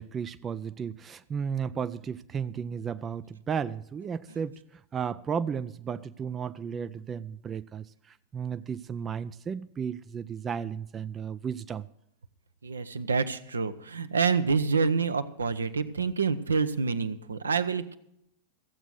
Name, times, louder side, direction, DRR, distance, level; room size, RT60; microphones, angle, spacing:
voice 1, 0.0-11.9, right 7 dB, 20° right, 0.4 m, -34 dB
voice 2, 12.6-18.0, right 5 dB, 75° right, 0.7 m, -27 dB
15.0 x 7.9 x 6.4 m
figure-of-eight pair, 90°, 0 cm